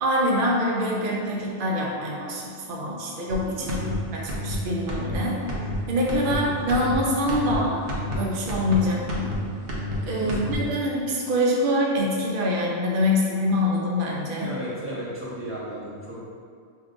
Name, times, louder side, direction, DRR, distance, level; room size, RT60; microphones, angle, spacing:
voice 1, 0.0-3.8 4.1-5.4 5.9-7.8 8.1-9.3 10.1-14.5, left 1 dB, 55° right, -3 dB, 0.7 m, -25 dB
sound 1, 3.3-3.4 3.7-4.0 4.3-4.6 4.9-5.2 5.5-5.8 6.1-6.4 6.7-7.0 7.3-7.6 7.9-8.2 8.5-8.8 9.1-9.4 9.7-10.0 10.3-10.5, left 1 dB, 85° right, 1.1 m, -30 dB
voice 2, 3.6-3.9 6.2-6.6 8.8-9.0 10.2-10.6 14.4-16.2, right 1 dB, 15° right, -11 dB, 0.7 m, -35 dB
4.9 x 2.6 x 2.5 m, 2.2 s
omnidirectional pair, 1.2 m